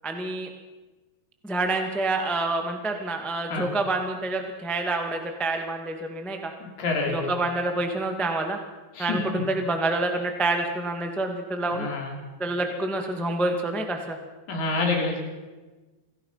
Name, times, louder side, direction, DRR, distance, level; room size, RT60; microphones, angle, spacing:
voice 1, 0.0-0.5 1.4-6.5 7.1-8.6 9.0-11.9 12.4-14.2, right 2 dB, ahead, 4 dB, 0.3 m, -27 dB
voice 2, 6.8-7.3 8.9-9.4 11.7-12.1 14.5-15.2, left 3 dB, 45° left, 0 dB, 5.0 m, -27 dB
27.0 x 17.0 x 5.9 m, 1.2 s
omnidirectional pair, 4.9 m